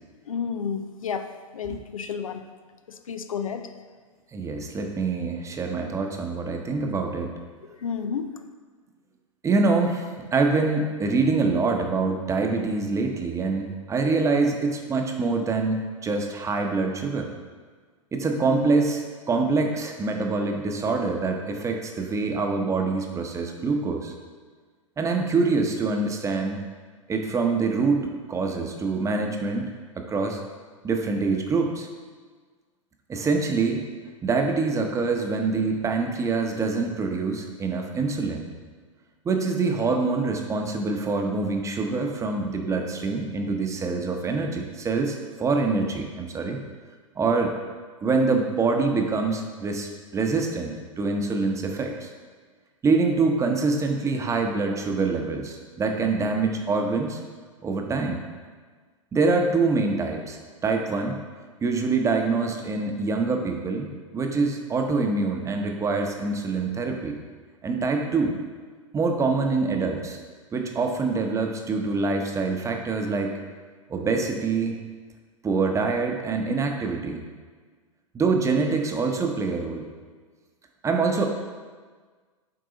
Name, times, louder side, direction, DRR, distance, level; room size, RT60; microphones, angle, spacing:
voice 1, 0.3-1.3 1.5-2.4 3.1-3.7 7.8-8.3, left 6 dB, 80° left, 8 dB, 0.5 m, -30 dB
voice 2, 4.3-7.3 9.4-17.3 18.1-24.1 25.0-26.6 27.1-30.4 30.8-31.9 33.1-33.8 34.2-38.5 39.2-46.6 47.2-47.6 48.0-52.1 52.8-57.2 57.6-58.2 59.1-61.2 61.6-67.2 67.6-68.4 68.9-70.2 70.5-73.4 73.9-74.8 75.4-77.2 78.1-79.9 80.8-81.3, right 4 dB, 15° right, 3 dB, 0.8 m, -25 dB
7.7 x 4.7 x 4.0 m, 1.5 s
hypercardioid pair, 105°, 17 cm